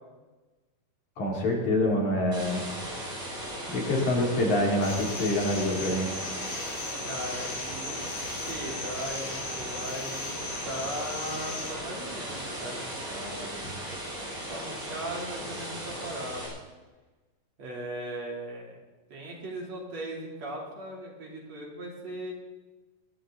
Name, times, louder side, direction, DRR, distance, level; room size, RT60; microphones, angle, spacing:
voice 1, 1.2-2.7 3.7-6.2, left 1 dB, 65° left, -1 dB, 4.3 m, -26 dB
sound 1, 2.3-16.5, equal, 35° right, 6.4 m, -37 dB
sound 2, 4.8-11.7, left 3 dB, 85° left, 4.0 m, -38 dB
voice 2, 7.0-8.1 8.5-13.5 14.5-16.4 17.6-18.8 19.1-22.3, right 1 dB, 55° right, -3 dB, 4.1 m, -38 dB
23.5 x 11.5 x 3.9 m, 1.2 s
omnidirectional pair, 3.7 m